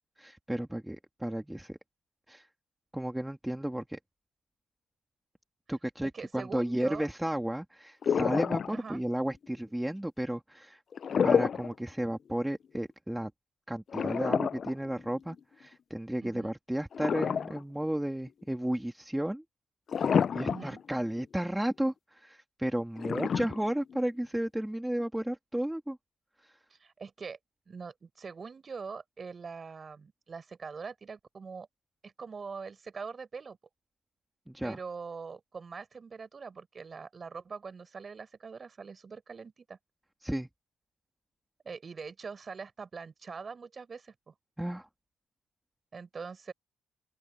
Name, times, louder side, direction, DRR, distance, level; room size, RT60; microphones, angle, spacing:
voice 1, 0.2-1.8 2.3-2.5 2.9-4.0 5.7-10.8 11.2-13.3 13.7-19.4 20.3-26.0 26.4-26.5 34.5-34.8 40.2-40.5 44.6-44.9, right 1 dB, 5° right, 2.4 m, -33 dB
voice 2, 6.0-7.1 8.7-9.0 16.2-16.5 20.5-20.8 26.7-27.4 27.7-31.7 32.0-33.6 34.6-39.8 41.6-44.3 45.9-46.5, right 5 dB, 40° right, 5.7 m, -43 dB
sound 1, 8.0-9.0 10.9-11.7 12.1-12.2 13.9-15.4 16.9-17.8 18.3-18.4 19.9-20.8 21.2-21.3 23.0-24.0, left 7 dB, 50° left, 0.5 m, -29 dB
open air
cardioid pair, 90°, 0 cm